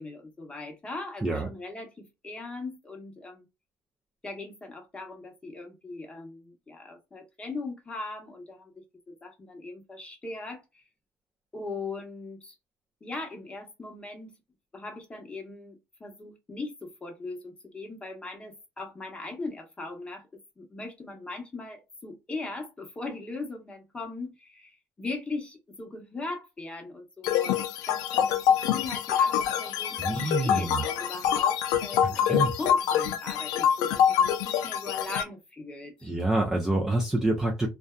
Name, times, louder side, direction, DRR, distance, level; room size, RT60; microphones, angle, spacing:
voice 1, 0.0-3.4 4.2-10.8 11.5-12.6 13.0-14.3 14.7-20.3 20.6-36.1, left 3 dB, 20° left, 0.9 m, -39 dB
sound 1, 27.2-35.2, left 9 dB, 85° left, 0.4 m, -25 dB
voice 2, 30.0-30.8 32.2-32.5 36.0-37.7, right 2 dB, 10° right, 0.5 m, -27 dB
2.6 x 2.2 x 2.2 m
cardioid pair, 115°, 6 cm